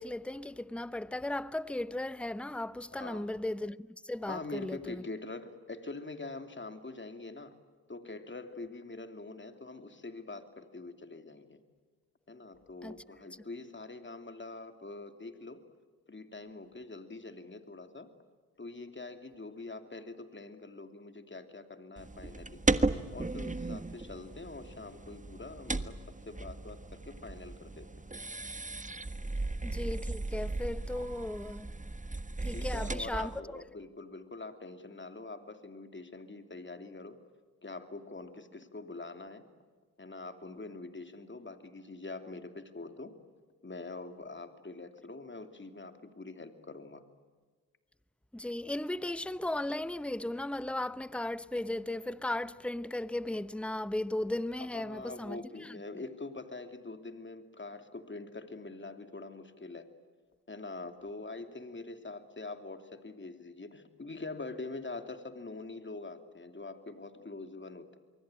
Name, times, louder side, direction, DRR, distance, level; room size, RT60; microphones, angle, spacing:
voice 1, 0.0-5.0 12.8-13.0 29.6-31.7 32.4-33.4 48.3-55.8, left 1 dB, 5° left, 0.9 m, -36 dB
voice 2, 3.0-3.3 4.3-7.6 7.9-11.6 12.3-15.6 16.1-18.1 18.6-22.6 23.1-26.0 26.2-27.9 32.5-37.2 37.6-39.5 40.0-43.1 43.6-47.0 54.7-59.9 60.5-68.0, left 3 dB, 30° left, 2.9 m, -44 dB
sound 1, 22.0-33.4, right 2 dB, 20° right, 1.5 m, -36 dB
26.0 x 23.0 x 9.1 m
supercardioid pair, 45°, 38 cm